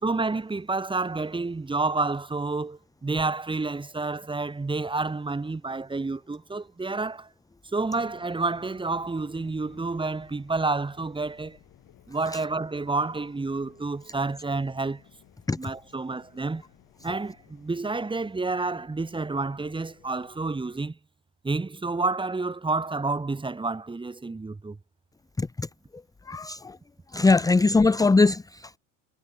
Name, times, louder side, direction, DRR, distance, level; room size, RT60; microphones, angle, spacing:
voice 1, 0.0-7.3 7.7-11.6 12.1-15.0 15.6-16.6 17.0-21.0 21.4-24.8, right 3 dB, 10° right, 1.7 m, -29 dB
sound 1, 7.9-20.9, left 15 dB, 55° left, 7.5 m, -58 dB
voice 2, 26.3-26.8 27.1-28.8, left 3 dB, 10° left, 0.7 m, -21 dB
supercardioid pair, 100°, 40 cm